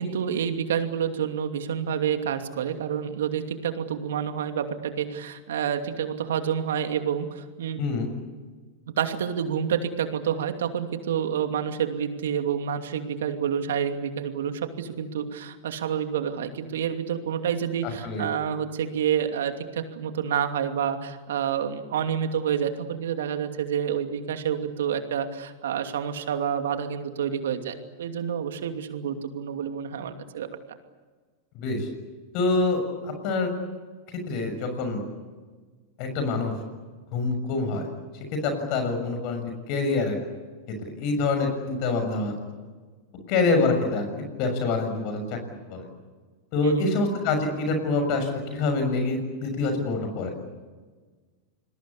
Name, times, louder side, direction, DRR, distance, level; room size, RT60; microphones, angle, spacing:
voice 1, 0.0-7.8 8.9-30.5 46.6-46.9, right 8 dB, 75° right, 6 dB, 2.7 m, -28 dB
voice 2, 7.8-8.1 17.8-18.2 31.5-31.9 32.3-33.5 34.3-35.0 36.0-36.5 37.1-37.9 38.4-40.2 40.8-42.3 43.3-45.9 46.5-50.3, left 3 dB, 50° left, 6 dB, 6.6 m, -26 dB
28.0 x 21.5 x 8.4 m, 1.4 s
hypercardioid pair, 100°, 0 cm